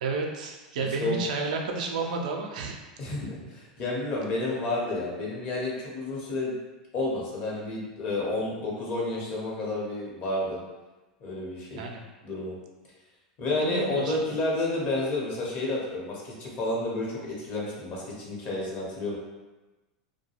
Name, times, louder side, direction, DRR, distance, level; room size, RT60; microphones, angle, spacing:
voice 1, 0.0-2.8 11.8-12.0 13.6-14.2, right 3 dB, 80° right, 2 dB, 0.4 m, -31 dB
voice 2, 3.0-6.5 6.9-10.6 11.2-11.8 12.2-12.6 13.4-19.2, left 2 dB, 45° left, -4 dB, 0.9 m, -30 dB
2.3 x 2.2 x 2.9 m, 1.1 s
hypercardioid pair, 105°, 4 cm